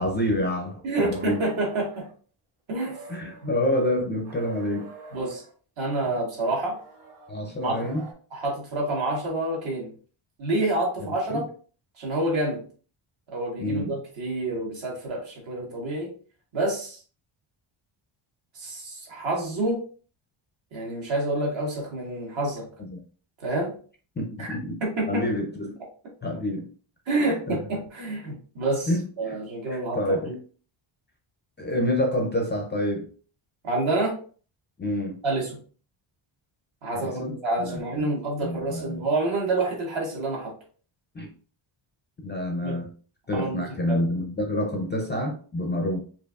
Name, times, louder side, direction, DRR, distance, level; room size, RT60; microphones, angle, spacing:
voice 1, 0.0-1.4 3.1-4.9 6.1-6.2 7.3-8.1 11.3-11.4 13.6-14.0 22.9-23.0 24.2-24.8 25.1-25.7 26.2-26.7 27.1-27.6 28.9-29.4 29.7-30.4 31.6-33.1 34.8-35.2 36.9-37.3 37.6-38.1 38.4-39.1 41.1-41.3 42.2-42.9 43.3-46.0, left 1 dB, 25° left, 2 dB, 0.4 m, -28 dB
voice 2, 0.8-2.1 2.7-3.0 3.4-3.5 5.1-5.4 5.8-6.8 7.6-7.9 8.3-9.9 10.4-11.5 12.0-12.6 13.3-16.1 16.5-17.0 18.5-19.8 20.7-22.7 23.4-23.8 24.4-24.5 24.8-25.2 27.1-28.9 29.2-30.0 33.6-34.2 35.2-35.6 36.8-40.5 42.6-42.8 43.3-44.0, right 2 dB, 65° right, -2 dB, 1.8 m, -28 dB
sound 1, 1.1-2.1 2.7-3.6 4.2-5.5 6.6-8.1, right 3 dB, 85° right, 1.2 m, -45 dB
4.6 x 2.7 x 2.3 m, 0.41 s
wide cardioid pair, 175°, 50 cm